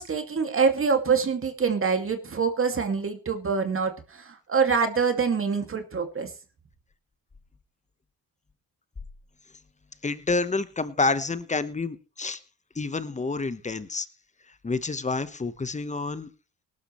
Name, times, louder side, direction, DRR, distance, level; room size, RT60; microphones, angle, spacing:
voice 1, 0.0-6.3, right 5 dB, 35° right, 6 dB, 2.3 m, -25 dB
voice 2, 10.0-12.4 12.7-14.1 14.6-16.3, left 3 dB, 20° left, 14 dB, 1.1 m, -28 dB
18.5 x 12.0 x 3.2 m, 0.34 s
cardioid pair, 85°, 35 cm